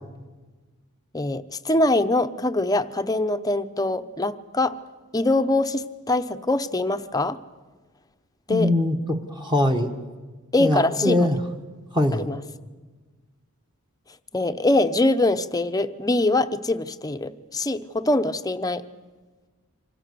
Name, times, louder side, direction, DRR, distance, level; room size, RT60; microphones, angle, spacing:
voice 1, 1.1-4.7 5.1-7.4 8.5-8.7 10.5-11.3 12.1-12.4 14.3-18.8, left 2 dB, 15° left, 9 dB, 0.8 m, -23 dB
voice 2, 8.5-9.9 10.6-11.4 11.9-12.3, left 1 dB, 20° right, 3 dB, 1.5 m, -22 dB
27.0 x 25.5 x 6.9 m, 1.3 s
head